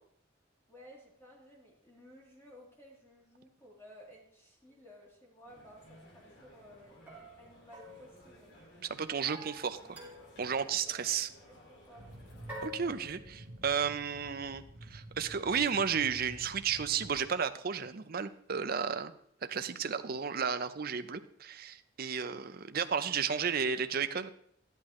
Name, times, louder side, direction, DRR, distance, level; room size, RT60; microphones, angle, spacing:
voice 1, 0.7-7.0 7.4-8.6 11.4-12.1, equal, 15° left, -4 dB, 3.1 m, -56 dB
sound 1, 4.7-4.8 7.1-8.7 9.3-10.5 10.9-11.2 12.5-13.5, equal, 10° right, 2.8 m, -49 dB
sound 2, 5.5-12.7, equal, 65° left, 2.3 m, -58 dB
voice 2, 8.8-10.0 10.4-11.3 12.6-19.1 19.4-24.3, right 6 dB, 50° right, 11 dB, 0.6 m, -33 dB
sound 3, 12.0-17.3, right 1 dB, 90° right, 1.6 m, -50 dB
12.5 x 11.0 x 3.1 m, 0.67 s
head